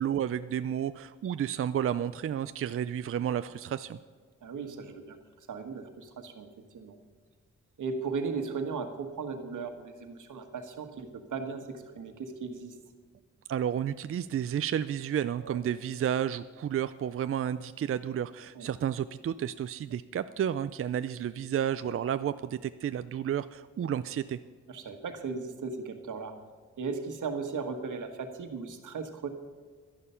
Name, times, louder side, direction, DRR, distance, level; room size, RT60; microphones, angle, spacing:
voice 1, 0.0-4.0 13.5-24.4, right 9 dB, 50° right, 12 dB, 0.4 m, -31 dB
voice 2, 4.4-5.2 5.5-6.5 6.7-7.0 7.8-12.7 15.4-15.6 18.5-18.7 24.7-26.3 26.8-29.3, right 4 dB, 85° right, 6 dB, 1.5 m, -37 dB
12.5 x 11.0 x 5.7 m, 1.5 s
wide cardioid pair, 115°, 30 cm